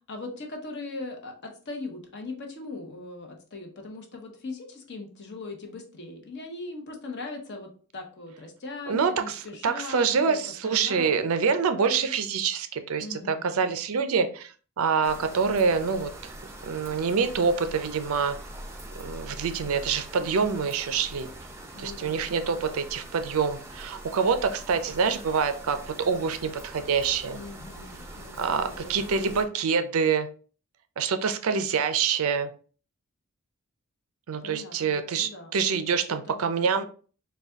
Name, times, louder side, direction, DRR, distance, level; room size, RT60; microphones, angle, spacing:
voice 1, 0.1-10.4 10.6-11.1 13.0-13.5 21.7-22.2 27.3-29.2 34.4-35.5 36.1-36.4, left 3 dB, 50° left, 3 dB, 0.8 m, -40 dB
voice 2, 8.9-16.3 16.6-18.4 19.0-21.3 21.8-27.4 28.4-30.3 31.0-32.5 34.3-36.9, right 5 dB, 70° right, 9 dB, 0.4 m, -26 dB
sound 1, 15.0-29.4, right 1 dB, 10° right, 0.5 m, -43 dB
4.0 x 2.3 x 3.5 m, 0.41 s
head